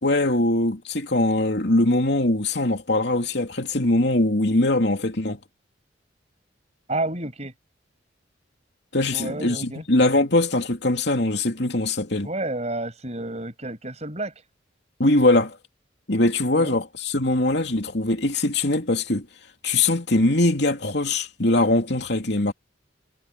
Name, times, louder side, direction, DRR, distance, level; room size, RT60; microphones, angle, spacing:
voice 1, 0.0-5.4 8.9-12.3 15.0-15.6 16.1-19.3 19.6-22.5, left 2 dB, 60° left, 3.0 m, -22 dB
voice 2, 6.9-7.5 9.1-9.8 12.2-14.3 16.6-16.7, right 2 dB, 35° right, 6.9 m, -30 dB
head